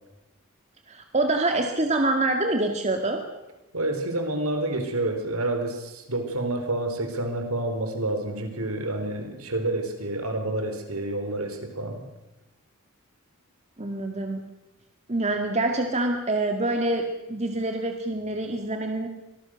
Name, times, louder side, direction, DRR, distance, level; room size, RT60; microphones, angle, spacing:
voice 1, 0.9-3.2 13.8-14.4 15.1-19.1, right 2 dB, 30° right, 4 dB, 2.1 m, -26 dB
voice 2, 3.7-12.0, right 2 dB, 75° right, 6 dB, 4.2 m, -29 dB
25.0 x 19.5 x 6.5 m, 1.0 s
head